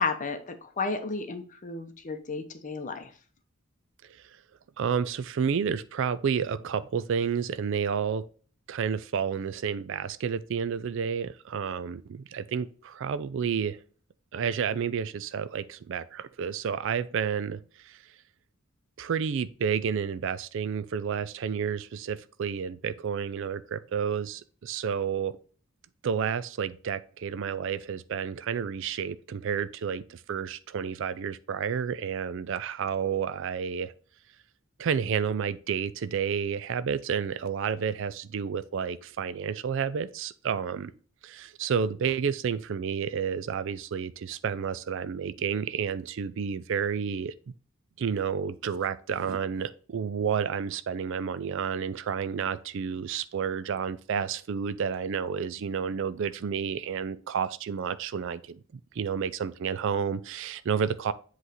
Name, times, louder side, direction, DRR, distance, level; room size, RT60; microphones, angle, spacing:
voice 1, 0.0-3.1, left 4 dB, 40° left, 0.7 m, -32 dB
voice 2, 4.8-8.2 8.7-13.8 14.3-18.0 19.0-25.3 26.0-33.9 34.8-40.9 41.2-47.3 48.0-58.6 59.0-61.1, right 7 dB, 65° right, 0.4 m, -30 dB
7.8 x 3.2 x 4.0 m
head